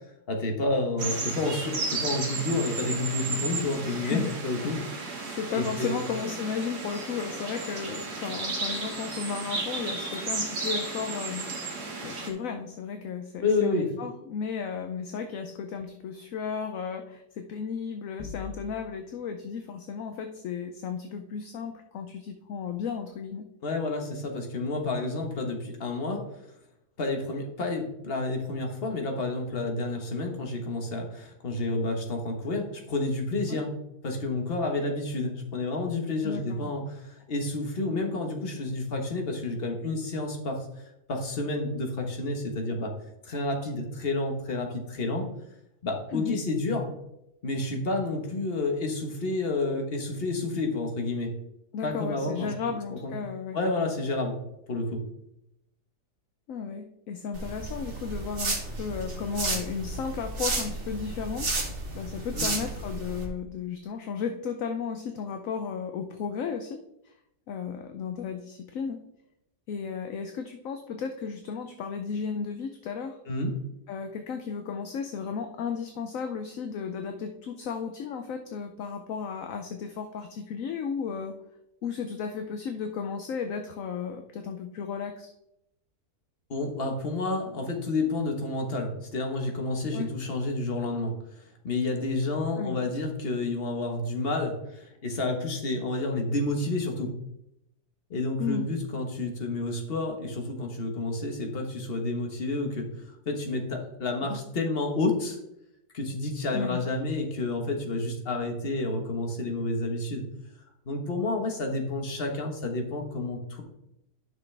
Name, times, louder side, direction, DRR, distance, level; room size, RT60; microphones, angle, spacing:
voice 1, 0.3-4.8 5.5-6.0 13.4-13.9 23.6-26.2 27.0-33.7 34.0-42.9 43.2-45.3 45.8-46.9 47.4-51.3 51.8-52.5 52.9-53.1 53.5-54.4 54.7-55.0 62.4-62.5 73.3-73.5 86.5-91.1 91.6-97.1 98.1-102.9 103.2-105.4 105.9-110.2 110.9-113.6, left 2 dB, 40° left, 3 dB, 1.4 m, -30 dB
sound 1, 1.0-12.3, right 3 dB, 70° right, 1.9 m, -34 dB
voice 2, 4.0-4.4 4.6-4.8 5.2-11.5 12.0-23.4 33.5-33.6 36.2-36.7 46.1-46.4 51.7-53.6 56.5-61.6 61.9-66.8 67.0-67.1 67.5-69.0 69.7-73.2 73.9-81.4 81.8-85.3 89.9-90.1 92.6-92.8 98.4-98.7 104.3-104.4 106.5-106.8, left 6 dB, 65° left, 6 dB, 0.9 m, -34 dB
sound 2, 18.2-19.2, left 5 dB, 10° left, 1.7 m, -42 dB
sound 3, 57.3-63.3, right 2 dB, 35° right, 1.5 m, -32 dB
10.5 x 6.2 x 3.3 m, 0.84 s
omnidirectional pair, 1.8 m